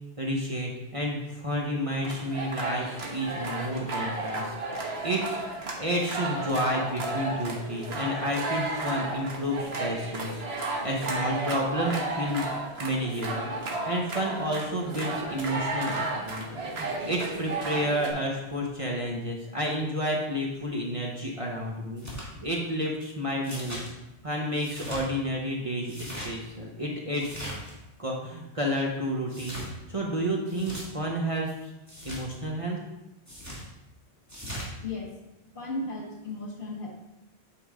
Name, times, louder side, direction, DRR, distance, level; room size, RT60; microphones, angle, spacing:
voice 1, 0.2-4.6 5.0-5.4 5.8-10.4 10.8-12.5 12.8-13.5 13.9-22.1 22.4-23.8 24.2-27.4 28.0-29.6 29.9-31.7 32.0-32.8, equal, 30° right, -2 dB, 1.0 m, -30 dB
sound 1, 2.0-18.1, right 2 dB, 70° right, 1.4 m, -33 dB
sound 2, 22.0-22.3 23.4-23.9 24.6-25.0 25.8-26.3 27.2-27.7 29.3-29.7 30.5-30.8 31.9-32.2 33.3-33.6 34.3-34.7, equal, 15° right, 2.0 m, -39 dB
voice 2, 34.8-35.2 35.5-36.9, left 2 dB, 50° left, -2 dB, 1.7 m, -35 dB
8.5 x 5.0 x 3.7 m, 0.95 s
omnidirectional pair, 1.1 m